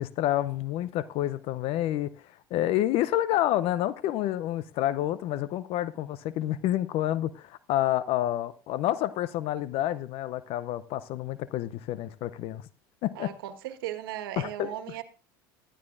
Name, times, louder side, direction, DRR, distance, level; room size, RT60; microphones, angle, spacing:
voice 1, 0.0-2.1 2.5-12.6 13.0-13.3 14.4-14.7, left 13 dB, 55° left, 0.6 m, -28 dB
voice 2, 13.1-15.0, right 12 dB, 80° right, 1.5 m, -37 dB
14.0 x 12.5 x 2.5 m
hypercardioid pair, 90°, 12 cm